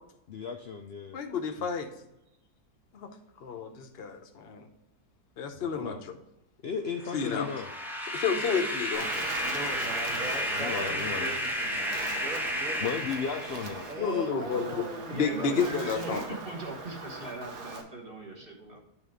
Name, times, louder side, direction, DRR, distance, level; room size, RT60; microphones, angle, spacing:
voice 1, 0.3-1.2 5.6-6.0 6.6-7.7 10.5-11.4 12.8-13.9 14.2-14.3, left 6 dB, 80° left, 4 dB, 0.5 m, -35 dB
voice 2, 1.1-1.9 2.9-3.1 3.4-4.7 5.4-6.1 7.1-7.5 8.1-9.5 14.0-14.9 15.1-16.4, left 6 dB, 50° left, 6 dB, 0.9 m, -31 dB
sound 1, 7.0-14.0, equal, ahead, 0.5 m, -33 dB
Wind, 8.9-17.8, right 3 dB, 75° right, 1.6 m, -41 dB
voice 3, 9.4-13.0 13.9-16.4 18.6-18.8, right 1 dB, 60° right, 0 dB, 2.0 m, -40 dB
voice 4, 15.1-18.8, right 2 dB, 35° right, 0 dB, 1.4 m, -39 dB
8.8 x 3.7 x 5.0 m, 0.86 s
omnidirectional pair, 1.7 m